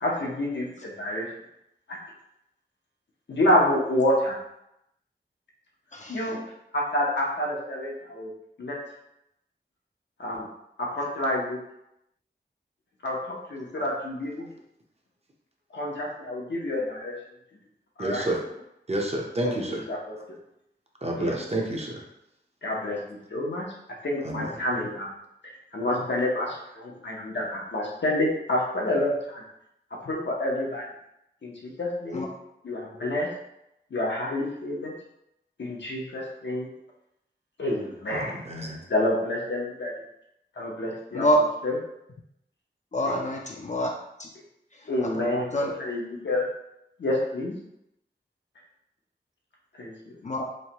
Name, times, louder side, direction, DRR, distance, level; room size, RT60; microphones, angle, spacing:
voice 1, 0.0-1.3 1.9-2.0 3.3-4.1 6.1-6.4 6.7-7.9 8.6-8.8 10.2-10.5 10.8-11.6 13.0-14.5 15.7-17.1 18.0-18.3 19.4-20.4 21.2-21.3 22.6-23.7 24.0-25.1 25.7-29.4 30.1-30.9 31.4-32.3 32.6-33.3 33.9-34.9 35.6-36.7 37.6-38.4 38.9-39.9 40.6-41.3 41.6-41.8 44.9-46.5 47.0-47.6 49.8-49.9, left 1 dB, 75° left, -3 dB, 0.7 m, -28 dB
voice 2, 18.0-18.4 18.9-19.8 21.0-22.0 24.2-24.5 38.1-38.8, right 1 dB, 35° right, 0 dB, 0.6 m, -29 dB
voice 3, 42.9-43.9 44.2-44.3 44.8-44.9 45.1-45.2 45.5-45.7 50.2-50.4, equal, 40° left, 0 dB, 0.4 m, -25 dB
3.0 x 2.1 x 2.8 m, 0.82 s
wide cardioid pair, 50°, 19 cm